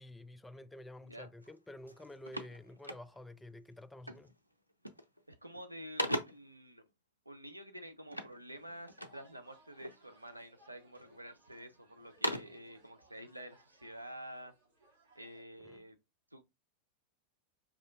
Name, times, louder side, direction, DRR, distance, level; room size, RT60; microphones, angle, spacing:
voice 1, 0.0-4.3 15.6-15.8, left 1 dB, 5° left, 0.3 m, -50 dB
sound 1, 1.4-1.6 1.9-3.4 4.0-4.4 4.7-5.2 5.5-6.6 8.1-9.3 9.8-10.4 11.0-11.6 12.0-12.7, equal, 90° left, 0.4 m, -40 dB
voice 2, 5.3-6.8 7.3-14.5 15.2-16.0 16.3-16.4, equal, 85° right, 0.5 m, -49 dB
sound 2, 8.5-15.4, right 2 dB, 60° right, 1.3 m, -66 dB
4.9 x 2.7 x 2.3 m
figure-of-eight pair, 90°, 0 cm